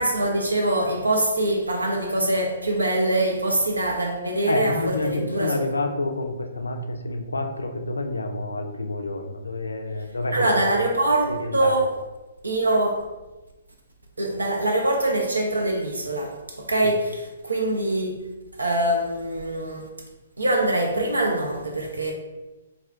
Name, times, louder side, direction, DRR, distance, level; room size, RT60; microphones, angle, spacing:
voice 1, 0.0-5.6 10.3-11.9 12.4-13.0 14.2-18.2 18.6-19.9 20.4-22.1, right 1 dB, 90° right, 0.4 m, -23 dB
voice 2, 4.5-10.6 11.3-11.8 16.8-16.9, left 2 dB, 85° left, 0.4 m, -29 dB
2.4 x 2.3 x 3.3 m
figure-of-eight pair, 125°, 0 cm